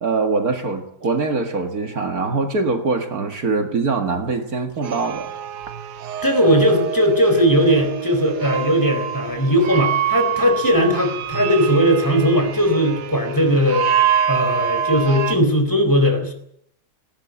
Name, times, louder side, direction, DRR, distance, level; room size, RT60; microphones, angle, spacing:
voice 1, 0.0-5.3, right 3 dB, 60° right, 5 dB, 2.3 m, -23 dB
sound 1, 4.8-15.3, right 9 dB, 80° right, 1.6 m, -25 dB
voice 2, 6.2-13.9 14.3-16.3, equal, 10° left, 5 dB, 4.1 m, -18 dB
19.0 x 18.5 x 8.1 m, 0.71 s
omnidirectional pair, 1.8 m